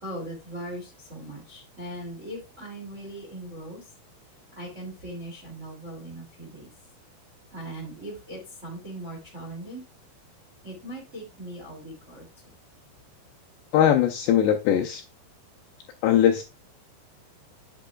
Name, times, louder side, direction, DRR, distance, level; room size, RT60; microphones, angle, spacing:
voice 1, 0.0-3.8 4.5-6.7 7.5-9.8 10.6-12.2, right 1 dB, 30° right, 1.3 m, -39 dB
voice 2, 13.7-15.0 16.0-16.4, left 10 dB, 90° left, 2.4 m, -20 dB
8.2 x 8.2 x 2.3 m
omnidirectional pair, 5.6 m